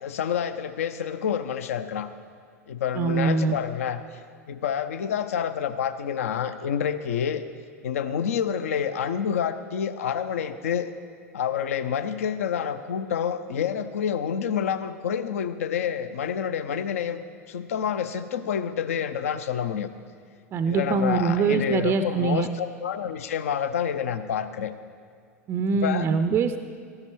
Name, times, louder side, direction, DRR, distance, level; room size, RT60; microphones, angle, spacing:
voice 1, 0.0-2.1 2.7-4.0 4.5-7.4 7.8-10.9 11.3-17.2 17.5-19.9 20.7-24.7 25.8-26.1, left 8 dB, 65° left, 11 dB, 0.5 m, -28 dB
voice 2, 2.9-3.6 20.5-22.5 25.5-26.6, right 5 dB, 25° right, 9 dB, 0.4 m, -23 dB
13.0 x 10.5 x 3.1 m, 2.2 s
figure-of-eight pair, 85°, 8 cm